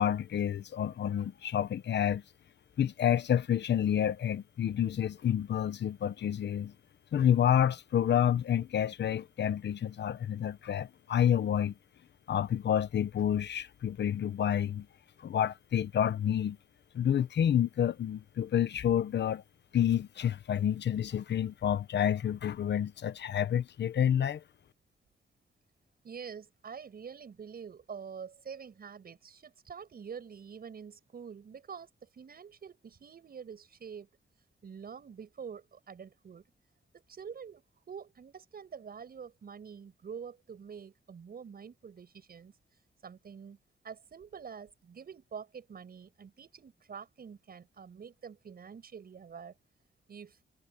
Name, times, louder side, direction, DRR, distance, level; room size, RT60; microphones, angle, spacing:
voice 1, 0.0-2.2 2.8-6.7 7.1-11.7 12.3-14.9 15.2-16.6 16.9-19.4 19.7-24.4, left 9 dB, 70° left, 1.0 m, -29 dB
voice 2, 26.0-34.1 34.6-36.4 36.9-42.5 43.0-43.6 43.8-49.5 50.1-50.4, right 6 dB, 55° right, 7.3 m, -46 dB
wide cardioid pair, 140°, 19 cm